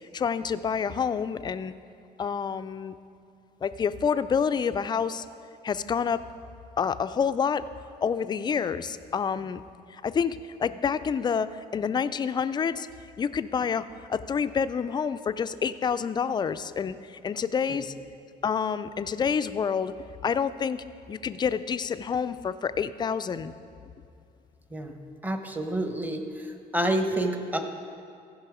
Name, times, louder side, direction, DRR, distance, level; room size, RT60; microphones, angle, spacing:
voice 1, 0.1-1.7 2.2-2.9 3.6-5.2 5.6-6.2 6.8-7.6 8.0-9.6 10.0-12.9 13.2-17.9 18.4-19.9 20.2-23.5, left 6 dB, 25° left, 13 dB, 0.3 m, -28 dB
voice 2, 25.2-27.6, right 1 dB, 10° right, 6 dB, 0.9 m, -29 dB
15.5 x 5.4 x 4.9 m, 2.4 s
cardioid pair, 110°, 17 cm